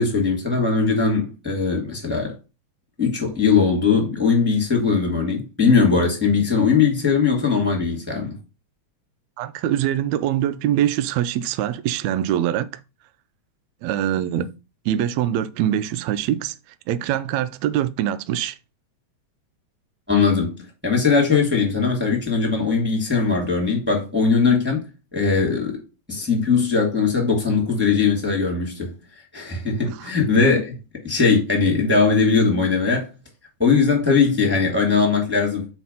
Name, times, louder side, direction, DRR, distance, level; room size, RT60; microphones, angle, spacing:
voice 1, 0.0-2.3 3.0-8.4 14.4-14.5 20.1-20.5 20.8-24.8 25.1-25.8 26.1-28.9 29.3-30.7 31.0-33.1 33.6-35.7, left 5 dB, 5° right, 1.9 m, -20 dB
voice 2, 9.4-12.8 13.8-14.5 14.8-16.5 16.9-18.6 29.8-30.1, right 11 dB, 90° right, 1.5 m, -23 dB
5.5 x 4.7 x 5.5 m
omnidirectional pair, 3.8 m